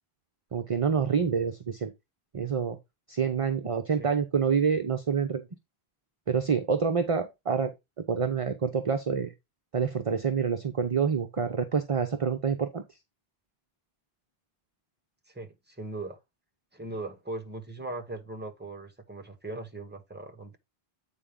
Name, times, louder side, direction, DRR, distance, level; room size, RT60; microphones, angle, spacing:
voice 1, 0.5-1.9 2.3-2.8 3.1-5.5 6.3-7.7 8.1-9.3 9.7-12.8, right 6 dB, 40° right, 0.7 m, -27 dB
voice 2, 15.3-16.2 16.7-20.6, right 2 dB, 10° right, 1.1 m, -39 dB
8.5 x 4.4 x 3.6 m
omnidirectional pair, 1.0 m